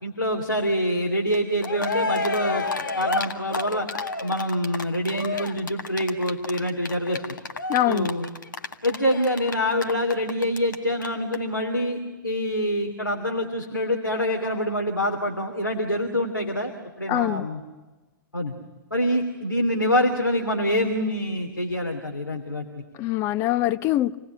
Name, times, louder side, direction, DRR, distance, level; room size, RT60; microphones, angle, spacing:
voice 1, 0.0-2.7 3.0-3.9 4.2-7.2 7.9-8.3 8.8-16.7 17.0-17.6 18.3-18.5 18.9-22.8, equal, 90° left, 2.8 m, -25 dB
Cheering, 1.3-1.4 1.6-10.7 11.0-11.1 11.3-11.4, left 3 dB, 70° left, 1.8 m, -30 dB
voice 2, 7.7-8.1 17.1-17.5 23.0-24.1, left 14 dB, 25° left, 0.8 m, -23 dB
28.0 x 19.0 x 10.0 m
figure-of-eight pair, 115°, 11 cm